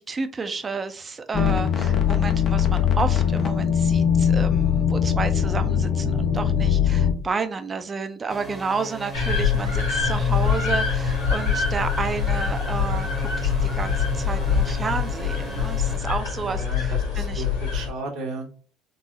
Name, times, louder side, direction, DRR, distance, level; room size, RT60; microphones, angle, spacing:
voice 1, 0.0-17.4, right 4 dB, 30° right, 0.5 m, -31 dB
sound 1, 1.3-7.1, left 8 dB, 45° left, 0.6 m, -21 dB
sound 2, 8.3-16.0, right 2 dB, 5° right, 0.9 m, -37 dB
sound 3, 9.1-17.9, left 6 dB, 90° left, 1.5 m, -24 dB
voice 2, 16.4-18.5, right 3 dB, 60° right, 0.9 m, -34 dB
3.8 x 2.0 x 2.8 m
hypercardioid pair, 65°, 0 cm